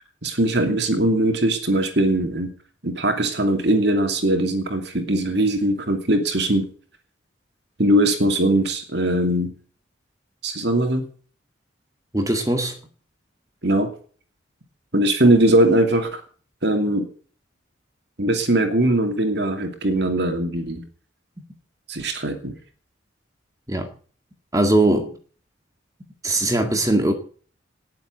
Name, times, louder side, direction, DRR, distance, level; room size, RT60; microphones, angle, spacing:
voice 1, 0.2-2.5 2.8-6.7 7.8-9.5 10.4-11.1 13.6-13.9 14.9-16.2 16.6-17.1 18.2-20.8 21.9-22.5, right 1 dB, 60° right, 2.6 m, -20 dB
voice 2, 12.1-12.8 23.7-23.9 24.5-25.1 26.2-27.1, right 1 dB, 20° right, 2.0 m, -20 dB
19.0 x 7.7 x 7.8 m
head